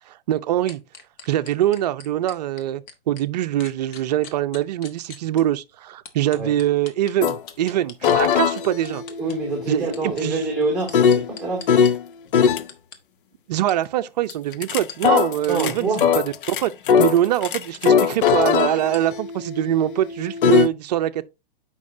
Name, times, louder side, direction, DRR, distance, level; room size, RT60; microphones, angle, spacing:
voice 1, 0.1-0.8 1.3-9.0 9.7-10.4 13.5-15.9 16.1-16.7 17.0-21.2, right 12 dB, 45° right, 0.7 m, -23 dB
sound 1, 0.7-3.2 3.6-5.4 6.1-8.2 8.6-9.4 9.9-11.9 12.4-13.0 13.7-13.8 14.3-14.4 14.9-15.0 15.4-15.5 15.9-16.0 16.4-16.5 16.9-17.1 17.7-17.8 18.3-18.4 18.9-19.0, left 6 dB, 25° left, 1.1 m, -41 dB
sound 2, 7.2-7.4 8.0-12.0 12.3-12.6 14.3-20.7, left 7 dB, 60° left, 0.7 m, -21 dB
voice 2, 9.2-11.8 15.5-16.1, right 3 dB, ahead, 2.2 m, -26 dB
8.4 x 5.3 x 2.7 m
hypercardioid pair, 140°, 29 cm